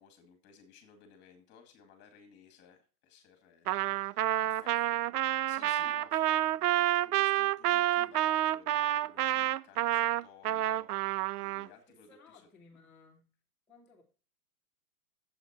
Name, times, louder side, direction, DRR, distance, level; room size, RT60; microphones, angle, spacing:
voice 1, 0.0-4.7 5.5-12.5, left 7 dB, 25° left, 2.2 m, -57 dB
Trumpet, 3.7-11.7, right 14 dB, 85° right, 0.5 m, -29 dB
voice 2, 4.4-5.0 11.9-13.3 13.7-14.0, left 4 dB, ahead, 1.5 m, -59 dB
7.8 x 7.7 x 6.0 m
hypercardioid pair, 160°, 45 cm